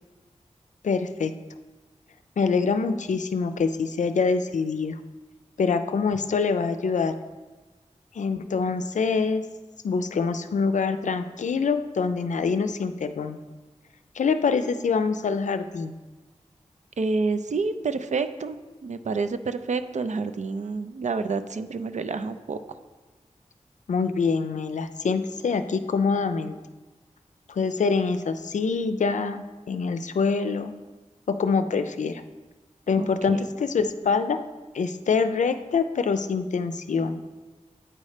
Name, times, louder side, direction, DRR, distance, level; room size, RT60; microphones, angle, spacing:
voice 1, 0.8-1.3 2.4-5.0 5.6-7.1 8.1-9.4 9.8-13.4 14.1-16.0 23.9-26.6 27.5-30.7 31.3-32.2 32.9-34.4 34.7-37.2, left 5 dB, 90° left, 10 dB, 0.4 m, -25 dB
voice 2, 17.0-22.8 33.0-33.5, right 4 dB, 75° right, 10 dB, 0.5 m, -29 dB
8.8 x 4.2 x 4.9 m, 1.2 s
wide cardioid pair, 80°, 12 cm